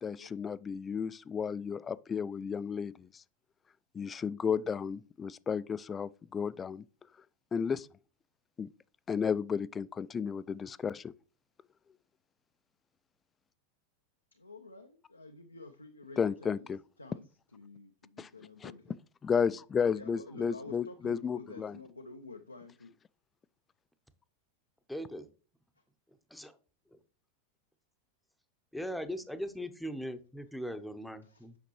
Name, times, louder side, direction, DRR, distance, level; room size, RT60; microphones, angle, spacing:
voice 1, 0.0-3.2 3.9-6.8 7.5-7.9 8.6-8.7 9.1-11.1 16.2-16.8 18.2-18.3 18.6-18.7 19.2-21.7, left 6 dB, 20° left, 0.3 m, -33 dB
voice 2, 14.3-16.7 17.0-17.2 17.5-19.0 19.5-19.6 19.9-22.9 31.3-31.4, left 3 dB, 90° left, 0.5 m, -49 dB
voice 3, 24.9-25.3 26.1-26.6 26.9-27.0 28.7-31.6, equal, ahead, 0.8 m, -40 dB
8.2 x 5.8 x 3.1 m
figure-of-eight pair, 90°, 0 cm